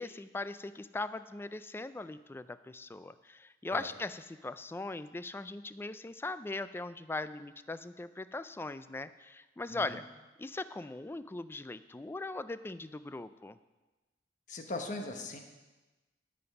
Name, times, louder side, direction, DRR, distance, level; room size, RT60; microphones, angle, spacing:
voice 1, 0.0-10.0 10.4-13.6, left 2 dB, 15° left, 13 dB, 0.3 m, -40 dB
voice 2, 9.7-10.0 14.5-15.4, left 2 dB, 45° left, 4 dB, 1.1 m, -39 dB
12.5 x 5.2 x 5.8 m, 1.1 s
head